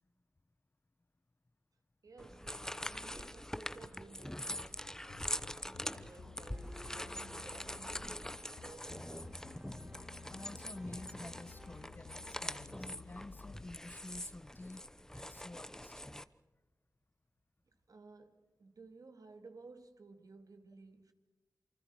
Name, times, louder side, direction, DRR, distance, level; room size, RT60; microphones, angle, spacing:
voice 1, 2.0-9.4 17.7-21.1, right 3 dB, 65° right, 2.2 m, -57 dB
sound 1, 2.2-16.2, left 1 dB, 10° left, 0.8 m, -44 dB
sound 2, 4.8-13.7, left 6 dB, 80° left, 0.8 m, -55 dB
sound 3, 6.5-11.8, right 1 dB, 15° right, 1.6 m, -58 dB
voice 2, 10.3-14.8 15.1-16.1, left 2 dB, 30° left, 1.0 m, -50 dB
28.0 x 24.5 x 4.8 m
wide cardioid pair, 60°, 7 cm